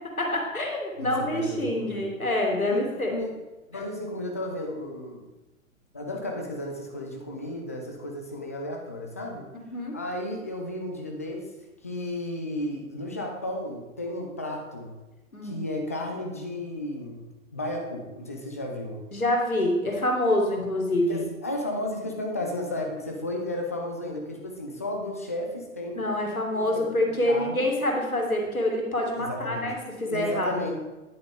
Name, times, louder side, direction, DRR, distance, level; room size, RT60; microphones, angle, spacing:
voice 1, 0.2-3.1 9.7-10.0 15.3-15.6 19.1-21.2 26.0-30.5, left 1 dB, 85° left, 0 dB, 2.2 m, -26 dB
voice 2, 1.0-2.0 2.7-3.4 3.7-5.3 5.9-9.5 9.9-11.5 11.8-14.9 15.4-17.3 17.5-19.0 21.1-26.0 26.5-26.9 27.2-27.7 29.2-29.7 30.1-30.8, left 1 dB, 15° left, 1 dB, 0.3 m, -33 dB
9.9 x 8.4 x 3.6 m, 1.1 s
figure-of-eight pair, 115°, 41 cm